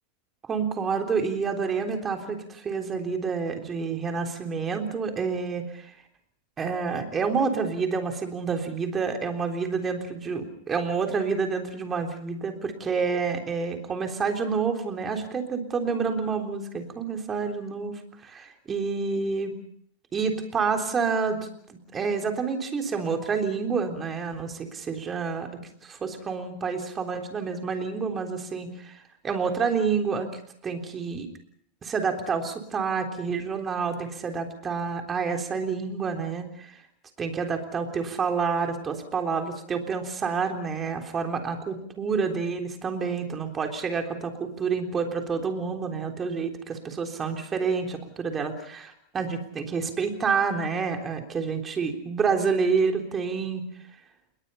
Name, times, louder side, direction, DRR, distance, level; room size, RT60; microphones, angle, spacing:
voice 1, 0.4-5.9 6.6-19.6 20.1-31.3 31.8-36.7 37.2-53.7, right 5 dB, 20° right, 4 dB, 3.6 m, -28 dB
28.5 x 21.5 x 5.6 m, 0.65 s
supercardioid pair, 155°, 0 cm